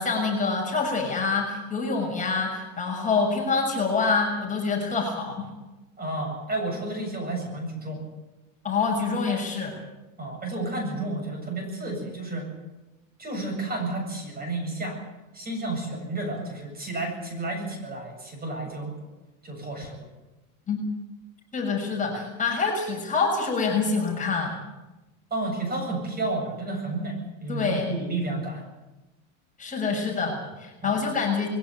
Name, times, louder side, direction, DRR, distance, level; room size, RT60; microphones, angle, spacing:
voice 1, 0.0-5.5 8.6-9.8 20.7-20.8 21.5-24.6 27.5-27.8 29.6-31.5, left 4 dB, 20° left, 0 dB, 6.3 m, -26 dB
voice 2, 6.0-8.0 10.2-12.5 13.2-15.0 15.3-18.9 19.4-20.1 25.3-28.7 30.8-31.0, right 2 dB, 20° right, 3 dB, 8.0 m, -31 dB
21.5 x 17.5 x 9.4 m, 1.1 s
supercardioid pair, 120°, 41 cm